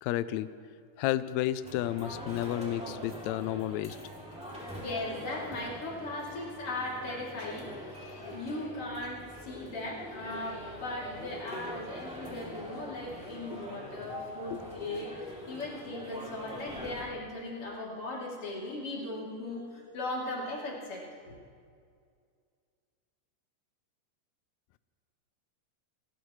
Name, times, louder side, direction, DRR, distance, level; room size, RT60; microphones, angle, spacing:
voice 1, 0.0-0.5 1.0-4.0 13.5-13.6 14.5-14.6, left 13 dB, 90° left, 14 dB, 1.6 m, -31 dB
sound 1, 1.6-17.1, equal, ahead, 2.4 m, -44 dB
voice 2, 4.4-21.3, left 2 dB, 45° left, -4 dB, 3.8 m, -38 dB
29.5 x 13.0 x 3.2 m, 2.2 s
omnidirectional pair, 3.8 m